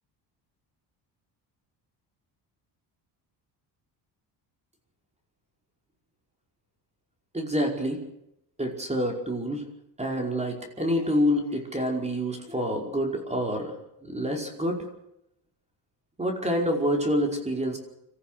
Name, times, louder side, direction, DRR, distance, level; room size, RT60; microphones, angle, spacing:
voice 1, 7.3-8.0 8.6-9.6 10.0-13.7 14.0-14.9 16.2-17.8, equal, 15° right, 2 dB, 5.1 m, -27 dB
26.0 x 15.0 x 6.8 m, 0.78 s
cardioid pair, 115°, 42 cm